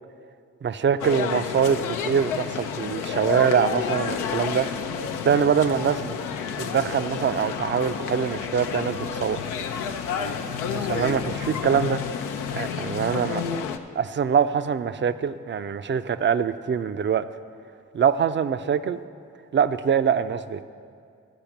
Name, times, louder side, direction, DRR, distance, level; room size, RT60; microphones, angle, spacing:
voice 1, 0.6-4.7 5.2-6.1 6.6-9.4 10.7-12.0 12.5-13.4 14.0-17.3 17.9-19.0 19.5-20.6, right 7 dB, 35° right, 12 dB, 0.5 m, -24 dB
sound 1, 1.0-13.8, left 7 dB, 85° left, 0.5 m, -30 dB
12.0 x 5.0 x 7.2 m, 2.3 s
hypercardioid pair, 40°, 31 cm